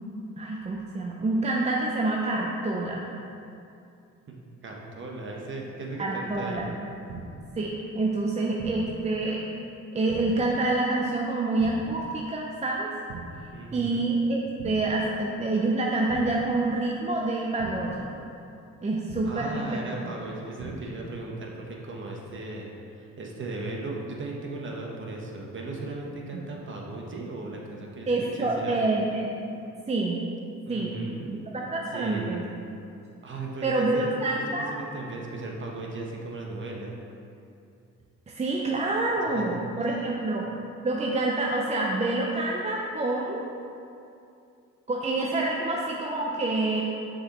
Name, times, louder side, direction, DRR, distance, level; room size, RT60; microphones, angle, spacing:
voice 1, 0.4-3.0 6.0-6.7 7.5-9.5 9.9-12.9 13.7-18.1 18.8-20.2 26.3-26.4 28.1-29.3 29.9-30.2 30.7-31.0 31.3-32.4 33.6-34.7 38.3-40.5 40.8-43.5 44.9-46.8, right 2 dB, 20° right, -2 dB, 0.5 m, -27 dB
voice 2, 4.6-6.7 13.5-14.1 19.3-28.1 28.3-28.8 30.7-31.4 31.9-32.5 33.2-34.1 34.7-37.0 39.3-40.1, right 2 dB, 40° right, -1 dB, 1.0 m, -37 dB
sound 1, 7.1-7.6 8.6-9.1 10.1-10.6 11.6-12.1 13.1-13.6 14.6-15.1 16.1-16.6 17.6-18.1 19.1-19.6 20.6-21.1, right 4 dB, 75° right, 0.7 m, -40 dB
6.2 x 5.1 x 3.0 m, 2.6 s
cardioid pair, 90°, 30 cm